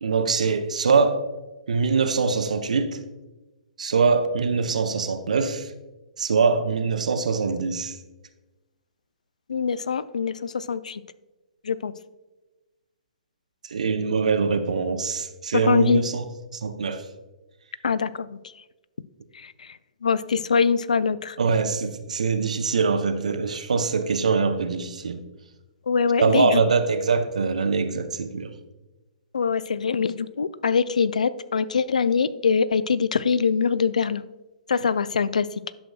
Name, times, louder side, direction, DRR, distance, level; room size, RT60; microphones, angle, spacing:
voice 1, 0.0-1.2 1.7-3.0 3.8-5.7 6.2-8.0 13.6-16.2 16.5-17.0 21.4-25.2 26.2-28.6, right 5 dB, 65° right, 8 dB, 0.6 m, -23 dB
voice 2, 9.5-11.0 11.6-11.9 15.5-16.0 17.8-18.4 19.3-21.4 25.9-26.6 29.3-34.3 34.7-35.5, left 6 dB, 65° left, 16 dB, 0.3 m, -23 dB
10.5 x 6.3 x 2.2 m, 1.1 s
figure-of-eight pair, 120°, 4 cm